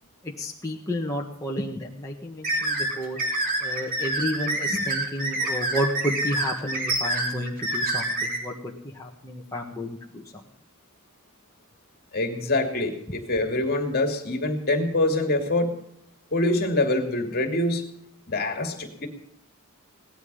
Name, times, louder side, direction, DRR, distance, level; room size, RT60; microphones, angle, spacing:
voice 1, 0.2-3.2 3.6-10.2, equal, 15° left, -3 dB, 1.6 m, -31 dB
sound 1, 2.4-8.4, right 2 dB, 40° right, 3.4 m, -27 dB
voice 2, 12.1-15.7 16.3-17.8 18.3-19.1, left 2 dB, 45° left, 4 dB, 2.6 m, -25 dB
18.0 x 12.5 x 5.6 m, 0.72 s
head